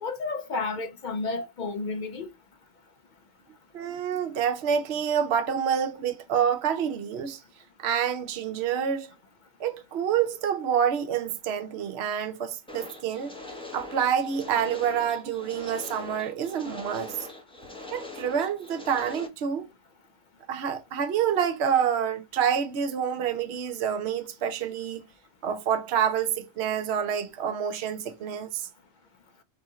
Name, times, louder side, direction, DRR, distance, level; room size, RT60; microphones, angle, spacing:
voice 1, 0.0-2.3, left 3 dB, 55° left, 0.5 m, -31 dB
voice 2, 3.7-7.4 7.8-9.1 9.6-13.3 13.7-17.3 17.9-19.7 20.5-25.0 25.4-28.7, right 8 dB, 60° right, 1.0 m, -27 dB
sound 1, 12.7-19.3, left 2 dB, 5° left, 1.0 m, -42 dB
4.8 x 2.7 x 3.7 m
omnidirectional pair, 1.3 m